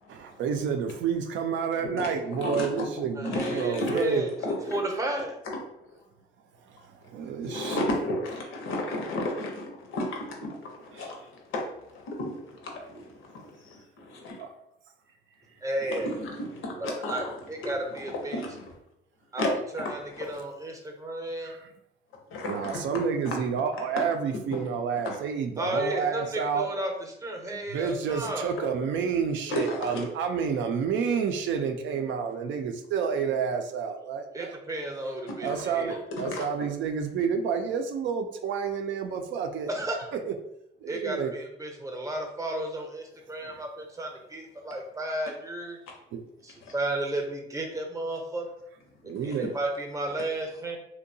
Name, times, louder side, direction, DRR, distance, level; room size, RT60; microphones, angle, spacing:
voice 1, 0.1-4.2 6.7-7.9 10.9-11.1 14.4-14.5 21.4-21.7 22.5-26.7 27.5-34.6 35.4-39.7 40.1-40.3 40.8-41.3 43.4-43.6 46.1-46.2 49.0-49.5, right 6 dB, 70° right, 5 dB, 0.4 m, -30 dB
voice 2, 1.8-2.9 3.2-4.0 4.4-4.8 5.5-5.6 7.4-14.4 15.9-17.4 17.6-17.7 18.3-18.7 19.4-19.5 19.8-19.9 20.2-20.3 22.3-22.8 24.5-24.6 24.9-25.0 29.5-30.1 35.4-35.6 36.3-36.4 46.6-46.7, left 1 dB, 80° left, 1 dB, 0.7 m, -33 dB
voice 3, 3.2-5.4 15.6-16.1 16.8-18.4 19.3-21.5 25.6-28.5 34.3-36.0 39.7-40.1 40.9-45.8 46.4-48.5 49.0-50.8, right 1 dB, 15° right, 2 dB, 0.6 m, -33 dB
2.7 x 2.1 x 2.6 m, 0.79 s
cardioid pair, 90°, 20 cm